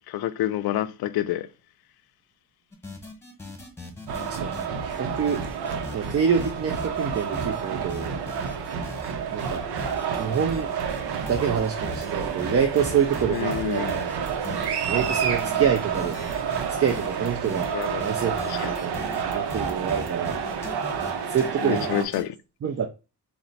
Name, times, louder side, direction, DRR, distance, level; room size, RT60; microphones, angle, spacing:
voice 1, 0.1-1.5 13.2-14.0 17.7-18.1 18.4-18.7 21.6-22.4, left 13 dB, 70° left, 0.5 m, -28 dB
sound 1, 2.7-5.0 5.3-6.1 6.4-7.6 7.9-9.1 9.4-10.6 10.9-21.1 21.4-21.5 21.7-22.2, left 2 dB, 5° left, 1.1 m, -40 dB
sound 2, 4.1-22.0, right 7 dB, 80° right, 0.7 m, -29 dB
voice 2, 4.3-5.4 5.9-8.2 9.3-9.6 10.2-10.7 11.2-13.9 14.9-16.2 16.7-17.7 18.0-18.3 18.6-19.0 19.2-20.4 21.3-21.9 22.6-22.9, right 7 dB, 40° right, 0.5 m, -26 dB
4.3 x 2.1 x 3.9 m
cardioid pair, 105°, 39 cm